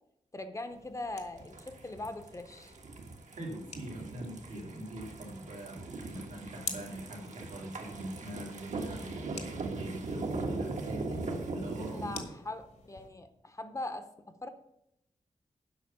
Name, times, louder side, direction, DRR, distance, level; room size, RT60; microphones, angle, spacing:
voice 1, 0.3-2.7 11.9-14.5, left 2 dB, 25° left, 9 dB, 0.7 m, -41 dB
sound 1, 0.7-13.1, left 4 dB, 60° left, 1.4 m, -50 dB
sound 2, 1.4-12.2, right 3 dB, 75° right, 1.4 m, -39 dB
voice 2, 3.4-5.8 6.1-12.1, right 1 dB, 90° right, -1 dB, 2.4 m, -43 dB
8.0 x 5.7 x 6.9 m, 0.82 s
wide cardioid pair, 125°, 13 cm